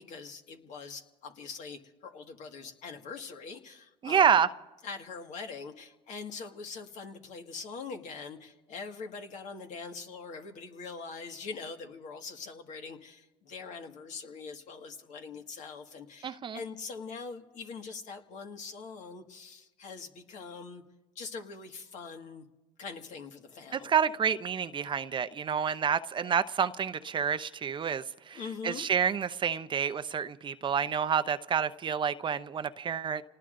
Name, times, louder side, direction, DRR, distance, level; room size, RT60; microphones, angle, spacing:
voice 1, 0.0-4.4 4.8-20.8 21.2-22.4 22.8-23.9 28.3-28.9, left 5 dB, 60° left, 4 dB, 1.9 m, -43 dB
voice 2, 4.0-4.5 16.2-16.6 23.7-28.4 28.6-33.2, right 7 dB, 35° right, 12 dB, 0.6 m, -28 dB
29.0 x 19.0 x 2.6 m, 1.1 s
supercardioid pair, 85°, 14 cm